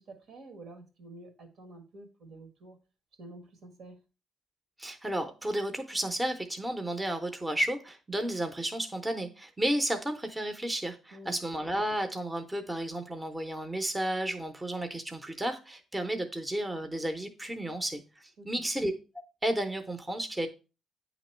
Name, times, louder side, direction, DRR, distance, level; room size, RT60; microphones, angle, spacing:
voice 1, 0.0-2.8 3.1-4.0 11.1-11.4 18.4-18.6, right 2 dB, 70° right, 1.5 m, -49 dB
voice 2, 4.8-18.9 19.4-20.5, right 1 dB, 15° right, 0.8 m, -32 dB
8.5 x 3.0 x 4.3 m
cardioid pair, 90°, 0 cm